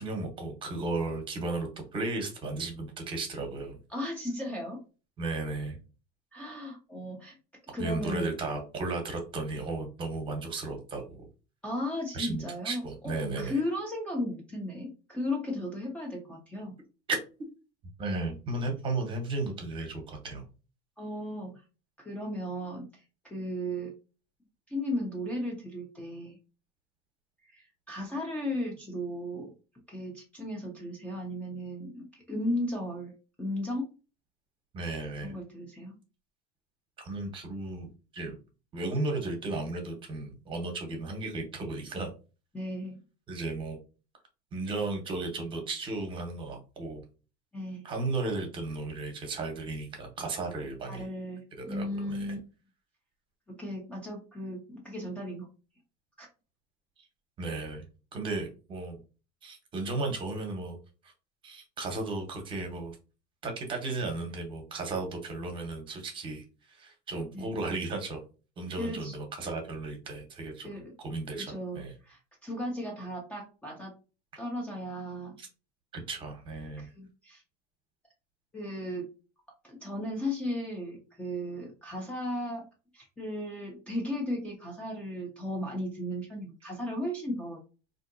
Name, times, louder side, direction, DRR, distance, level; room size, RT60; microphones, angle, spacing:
voice 1, 0.0-3.8 5.2-5.8 7.8-11.3 12.1-13.6 17.1-17.2 18.0-20.4 34.7-35.3 37.0-38.4 38.7-42.1 43.3-43.8 44.5-47.0 47.8-51.1 51.6-52.3 57.4-57.8 58.1-59.0 59.4-60.8 61.0-61.1 61.4-62.9 63.4-68.2 68.6-70.7 71.0-71.9 75.4-75.5 75.9-76.9, right 3 dB, 25° right, 3 dB, 0.8 m, -35 dB
voice 2, 3.9-4.8 6.3-7.4 7.7-8.3 11.6-16.8 21.0-21.6 22.0-23.9 24.7-26.4 27.5-29.5 29.9-33.1 33.4-33.9 35.2-36.0 42.5-43.0 47.5-47.8 50.9-52.4 53.5-55.5 56.2-56.3 67.3-67.5 68.8-69.1 70.6-70.9 71.4-73.9 74.4-75.4 76.8-77.4 78.5-79.1 79.6-82.6 82.9-87.6, left 1 dB, 5° left, 0 dB, 0.4 m, -35 dB
3.6 x 2.6 x 2.5 m, 0.34 s
cardioid pair, 155°, 20 cm